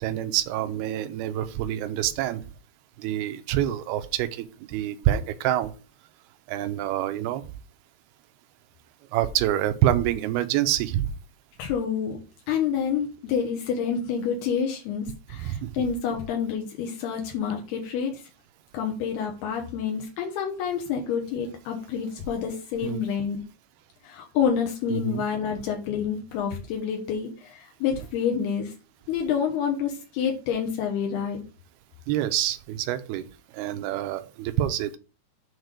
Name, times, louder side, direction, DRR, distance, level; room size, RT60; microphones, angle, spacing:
voice 1, 0.0-2.4 3.0-5.7 6.5-7.4 9.1-11.1 15.4-15.7 22.8-23.0 24.9-25.2 32.1-33.2 33.5-35.0, right 12 dB, 85° right, 11 dB, 2.6 m, -26 dB
voice 2, 11.6-12.2 12.5-18.2 18.7-23.4 24.0-28.7 29.1-31.4, left 7 dB, 80° left, 2 dB, 3.1 m, -28 dB
8.0 x 4.0 x 6.5 m, 0.33 s
omnidirectional pair, 4.7 m